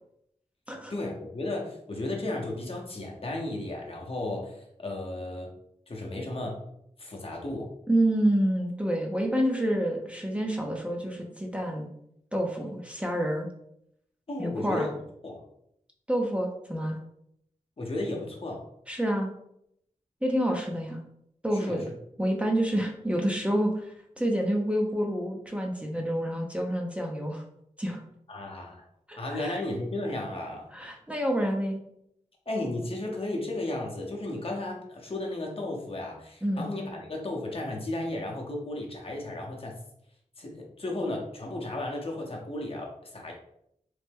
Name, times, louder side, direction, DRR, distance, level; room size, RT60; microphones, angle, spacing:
voice 1, 0.9-5.5 5.9-6.6 7.0-7.7 14.3-14.9 15.2-15.4 17.8-18.7 21.6-21.8 28.3-28.8 29.2-30.7 32.5-39.8 40.4-43.3, left 2 dB, 45° left, 0 dB, 0.7 m, -34 dB
voice 2, 7.9-11.9 12.3-13.5 14.4-14.9 16.1-17.0 18.9-19.3 20.2-21.0 21.4-21.8 22.2-27.4 27.8-28.0 29.1-29.6 30.7-31.8 36.4-36.7, right 1 dB, 10° right, 0 dB, 0.5 m, -28 dB
3.1 x 2.1 x 3.4 m, 0.75 s
wide cardioid pair, 60°, 13 cm